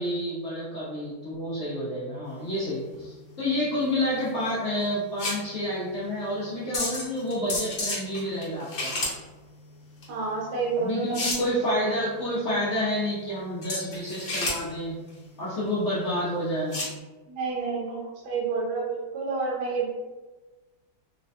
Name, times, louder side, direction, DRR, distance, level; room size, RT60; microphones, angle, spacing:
voice 1, 0.0-8.9 10.8-15.0 15.4-16.8, equal, 70° left, -9 dB, 0.7 m, -29 dB
sound 1, 2.3-17.0, left 2 dB, 50° left, 0.9 m, -34 dB
voice 2, 10.1-11.2 17.3-19.9, right 4 dB, 75° right, -2 dB, 1.0 m, -29 dB
3.2 x 2.1 x 2.6 m, 1.2 s
omnidirectional pair, 2.1 m